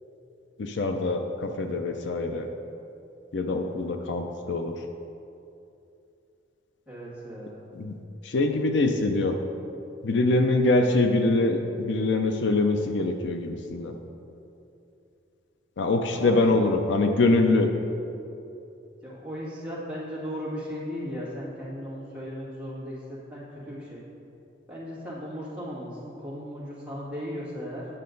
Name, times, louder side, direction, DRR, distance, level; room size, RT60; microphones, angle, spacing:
voice 1, 0.6-2.5 3.3-4.7 7.7-7.9 8.2-9.4 10.0-13.9 15.8-17.7, left 2 dB, 65° left, 5 dB, 0.5 m, -24 dB
voice 2, 6.9-7.6 16.1-16.6 19.0-24.0 24.7-27.9, equal, 5° right, -9 dB, 2.1 m, -36 dB
8.7 x 7.4 x 3.9 m, 2.8 s
head